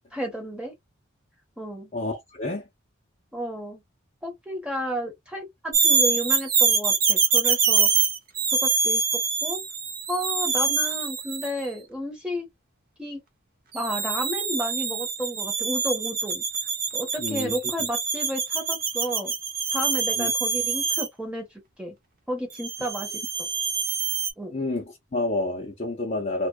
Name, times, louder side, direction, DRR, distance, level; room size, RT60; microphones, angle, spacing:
voice 1, 0.1-0.7 1.6-1.9 3.3-3.8 4.2-7.9 8.5-9.6 10.1-12.5 13.0-13.2 13.7-16.4 16.9-19.3 19.7-21.5 21.8-22.0 22.3-23.5 24.4-24.5, equal, 5° right, 0.9 m, -32 dB
voice 2, 1.9-2.7 17.2-17.6 20.2-20.3 24.5-26.5, left 2 dB, 35° left, 0.5 m, -29 dB
sound 1, 5.7-11.6 13.7-21.1 22.6-24.3, right 5 dB, 45° right, 0.5 m, -25 dB
2.6 x 2.1 x 2.2 m
head